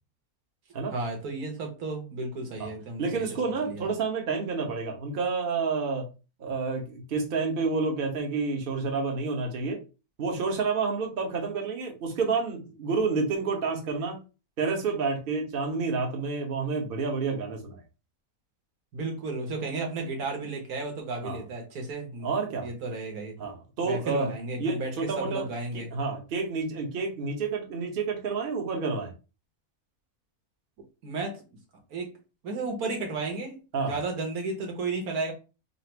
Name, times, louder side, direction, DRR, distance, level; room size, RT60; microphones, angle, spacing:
voice 1, 0.9-3.9 18.9-22.3 22.6-23.4 23.8-25.9 31.0-31.4 31.9-32.2 32.4-33.6 33.8-35.3, right 3 dB, 85° right, 1.6 m, -33 dB
voice 2, 3.0-6.1 6.4-9.8 10.2-14.2 14.6-17.8 21.2-21.4 22.2-22.7 23.4-24.3 24.6-25.5 25.7-29.1 33.7-34.0, right 4 dB, 40° right, 1.0 m, -29 dB
4.1 x 2.0 x 4.4 m
omnidirectional pair, 1.6 m